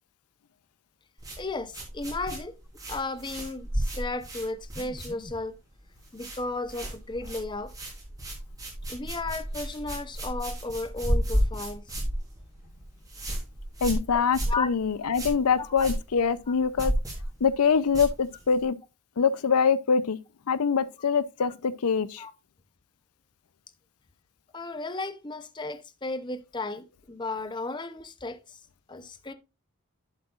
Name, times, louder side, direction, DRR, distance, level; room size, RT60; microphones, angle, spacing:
sound 1, 1.2-5.5 5.8-6.4 6.7-18.6, equal, 15° right, 3.5 m, -32 dB
voice 1, 1.4-2.5 2.9-5.5 6.1-7.7 8.9-12.0 14.5-14.7 15.0-15.2 15.6-15.9 22.2-22.3 24.5-28.6 28.9-29.3, left 3 dB, 20° left, 0.7 m, -34 dB
voice 2, 13.8-16.9 17.4-18.8 19.2-20.2 20.5-22.2, left 6 dB, 90° left, 0.6 m, -24 dB
11.0 x 7.5 x 2.4 m
head